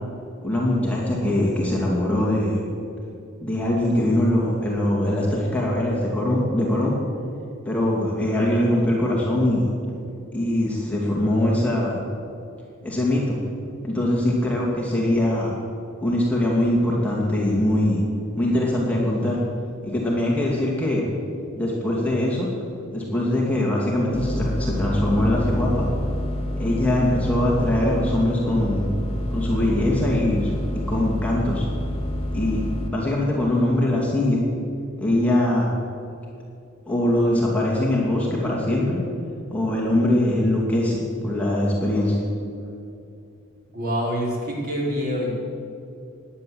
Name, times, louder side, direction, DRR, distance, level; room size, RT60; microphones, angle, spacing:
voice 1, 0.4-2.6 3.4-7.0 7.7-9.7 10.3-12.0 12.8-13.4 13.8-15.5 16.0-18.0 18.4-19.4 19.8-21.0 21.6-22.5 22.9-25.9 26.6-28.9 29.3-30.5 30.9-31.7 32.3-32.6 32.9-34.4 35.0-35.7 36.9-39.0 39.5-42.2, left 1 dB, 5° left, -4 dB, 2.4 m, -22 dB
sound 1, 24.1-32.9, left 1 dB, 25° left, 1.9 m, -28 dB
voice 2, 43.7-45.3, equal, 45° right, -3 dB, 4.3 m, -26 dB
17.0 x 10.5 x 7.8 m, 2.6 s
head